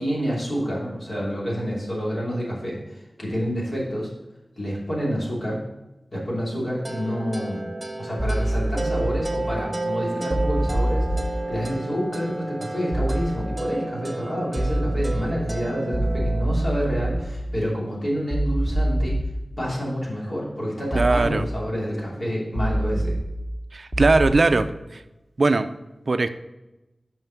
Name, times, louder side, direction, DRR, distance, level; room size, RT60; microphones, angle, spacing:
voice 1, 0.0-4.1 4.6-5.6 6.1-7.7 8.0-19.2 19.6-23.1, equal, 50° left, -5 dB, 2.9 m, -28 dB
sound 1, 6.8-16.5, right 2 dB, 25° right, 0.8 m, -32 dB
sound 2, 8.2-9.2 10.3-11.2 12.9-13.2 14.6-15.2 15.9-17.2 18.3-19.2 20.9-21.2 22.6-23.2 23.9-24.3, right 1 dB, ahead, 1.1 m, -24 dB
voice 2, 21.0-21.5 23.7-24.7 25.4-25.7 26.1-26.3, right 3 dB, 60° right, 11 dB, 0.4 m, -19 dB
5.8 x 5.5 x 5.9 m, 1.0 s
wide cardioid pair, 80°, 0 cm